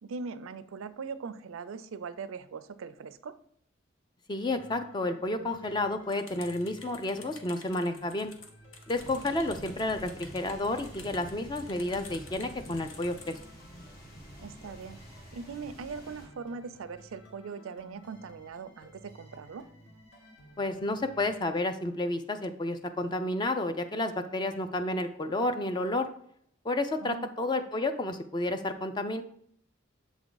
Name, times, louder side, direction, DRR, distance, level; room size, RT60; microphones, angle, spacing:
voice 1, 0.0-3.4 14.4-15.0 15.3-19.7 27.0-27.3, right 5 dB, 90° right, 14 dB, 0.4 m, -40 dB
voice 2, 4.3-8.3 8.9-13.4 20.6-26.1 26.6-29.2, left 2 dB, 20° left, 8 dB, 0.4 m, -31 dB
sound 1, 4.5-22.0, equal, 70° left, 1.4 m, -55 dB
sound 2, 6.1-13.5, left 4 dB, 85° left, 0.9 m, -50 dB
sound 3, 8.9-16.3, equal, 50° left, 1.5 m, -48 dB
7.1 x 3.5 x 3.8 m, 0.64 s
head